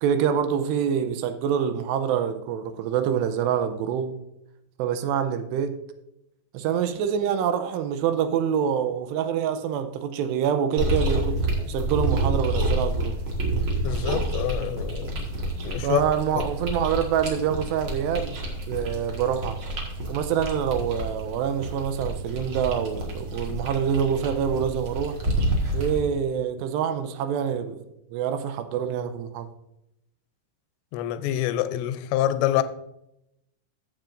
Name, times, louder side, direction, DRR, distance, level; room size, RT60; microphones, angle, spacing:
voice 1, 0.0-4.1 4.8-5.8 6.5-13.2 15.8-18.4 18.7-19.6 20.1-25.2 25.7-27.8 28.1-29.5, right 8 dB, 85° right, 2.7 m, -26 dB
sound 1, 10.8-26.0, right 1 dB, 60° right, 1.4 m, -29 dB
voice 2, 13.8-15.2 15.6-16.0 16.4-16.5 30.9-32.6, left 12 dB, 90° left, 2.9 m, -26 dB
13.5 x 7.5 x 2.6 m
omnidirectional pair, 5.0 m